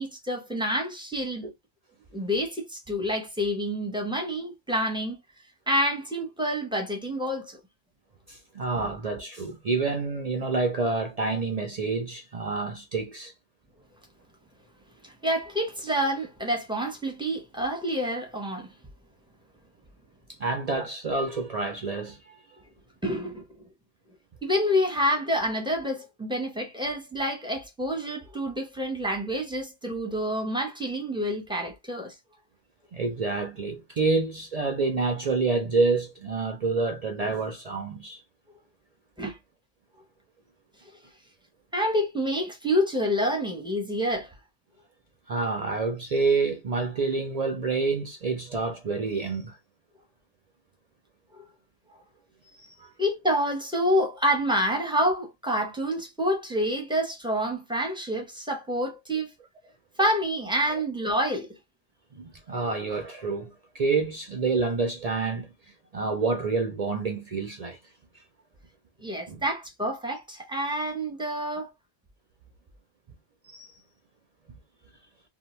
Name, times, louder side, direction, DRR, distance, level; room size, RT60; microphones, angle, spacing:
voice 1, 0.0-1.5 2.1-5.2 5.7-7.6 15.0-18.7 23.0-23.7 24.4-32.1 39.2-39.4 41.7-44.3 51.3-51.4 53.0-59.3 60.0-61.5 69.0-71.7, equal, 5° right, 0.5 m, -28 dB
voice 2, 8.3-13.3 20.4-22.6 32.9-38.2 45.3-49.5 52.6-52.9 60.7-60.8 62.1-65.5 65.9-67.8 69.3-69.4 73.4-73.7, right 4 dB, 70° right, 0.3 m, -28 dB
2.8 x 2.1 x 3.0 m
omnidirectional pair, 1.3 m